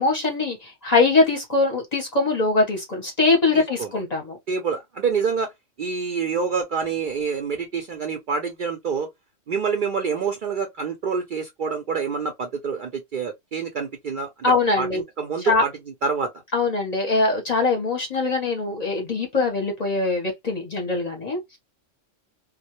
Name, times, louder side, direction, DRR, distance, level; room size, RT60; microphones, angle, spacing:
voice 1, 0.0-4.4 14.4-15.0 15.4-15.6 16.5-21.6, left 3 dB, 40° left, 0.7 m, -22 dB
voice 2, 3.5-3.9 4.5-5.5 5.8-9.1 9.5-14.3 14.8-15.7 16.0-16.3, right 5 dB, 60° right, 0.5 m, -27 dB
2.2 x 2.0 x 2.8 m
omnidirectional pair, 1.2 m